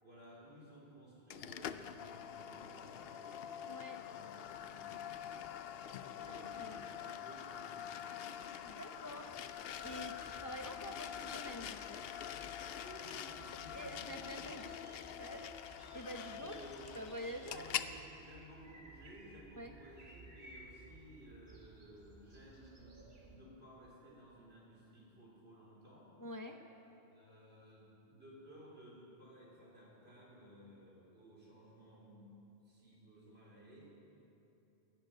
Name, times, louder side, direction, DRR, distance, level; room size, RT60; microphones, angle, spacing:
voice 1, 0.0-5.2 6.0-8.2 12.8-15.2 16.1-16.9 17.3-23.0 23.3-26.2 27.1-32.4 32.6-33.9, right 1 dB, 85° right, -5 dB, 4.2 m, -57 dB
sound 1, 1.3-17.9, left 9 dB, 70° left, 0.8 m, -45 dB
voice 2, 3.6-4.0 6.3-6.9 8.7-9.4 9.8-12.0 13.7-14.7 15.2-15.5 15.9-16.6 16.9-17.7 19.6-19.7 26.2-26.6, equal, 20° left, 4 dB, 0.7 m, -47 dB
Sliding door, 8.6-13.1, left 2 dB, 50° left, 1.6 m, -64 dB
sound 2, 13.3-23.4, right 2 dB, 50° right, 1.8 m, -58 dB
14.0 x 10.5 x 8.9 m, 2.9 s
omnidirectional pair, 1.0 m